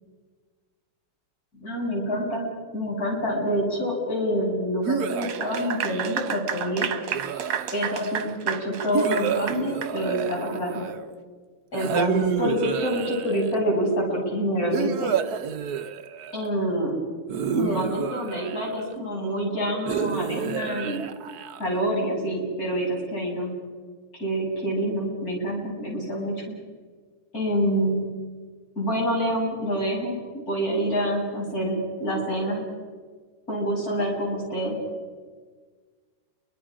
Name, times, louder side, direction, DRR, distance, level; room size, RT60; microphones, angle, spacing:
voice 1, 1.5-2.5 2.7-6.9 7.7-10.8 11.7-15.1 16.3-16.9 17.5-21.0 21.6-23.5 24.2-26.3 27.3-28.0 28.8-30.2 30.5-32.6 33.5-34.8, equal, 40° left, -3 dB, 7.9 m, -26 dB
sound 1, 4.8-6.4 7.1-8.0 8.9-11.1 11.7-13.6 14.7-16.5 17.3-18.9 19.9-21.8, right 8 dB, 55° right, 1.2 m, -30 dB
Clapping / Applause, 5.1-10.0, right 8 dB, 75° right, 2.2 m, -31 dB
30.0 x 24.0 x 5.0 m, 1.5 s
omnidirectional pair, 2.4 m